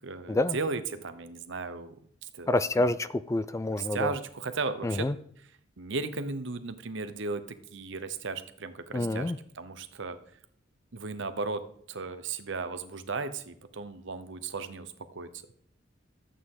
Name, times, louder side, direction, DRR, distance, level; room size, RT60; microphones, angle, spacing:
voice 1, 0.0-1.9 2.2-2.9 3.7-5.1 5.4-5.5 5.8-10.2 10.9-15.3, right 4 dB, 65° right, 1.0 m, -36 dB
voice 2, 2.5-4.1 4.8-5.1 8.9-9.4, left 2 dB, 15° left, 0.3 m, -27 dB
14.0 x 8.4 x 3.8 m
head